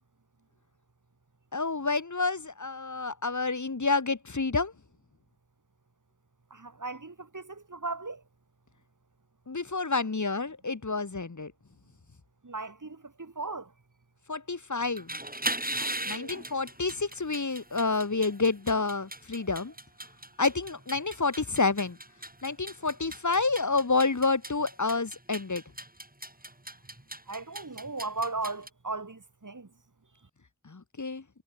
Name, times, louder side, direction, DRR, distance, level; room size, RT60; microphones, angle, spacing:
voice 1, 1.5-4.7 9.5-11.5 14.3-15.1 16.1-19.7 20.4-22.0 22.4-25.6 30.7-31.2, left 3 dB, 60° left, 1.8 m, -29 dB
voice 2, 6.5-8.2 12.4-13.7 15.7-16.4 27.3-29.7, right 3 dB, 65° right, 3.1 m, -37 dB
sound 1, 14.9-28.7, right 1 dB, 25° right, 7.9 m, -39 dB
wide cardioid pair, 45°, 34 cm